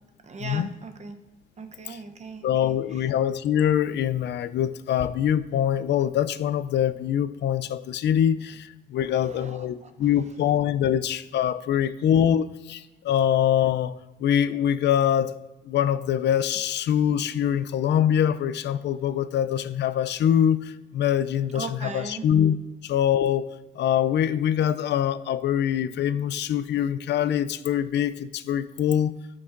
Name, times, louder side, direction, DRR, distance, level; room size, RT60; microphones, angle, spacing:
voice 1, 0.2-1.2 1.6-2.7 9.0-10.2 17.3-17.5 21.5-22.2, right 3 dB, 35° right, 7 dB, 0.7 m, -39 dB
voice 2, 2.4-13.9 14.2-15.4 15.6-22.6 22.8-23.5 23.8-29.1, left 10 dB, 60° left, 14 dB, 0.4 m, -24 dB
13.0 x 6.0 x 2.5 m, 1.0 s
cardioid pair, 90°, 20 cm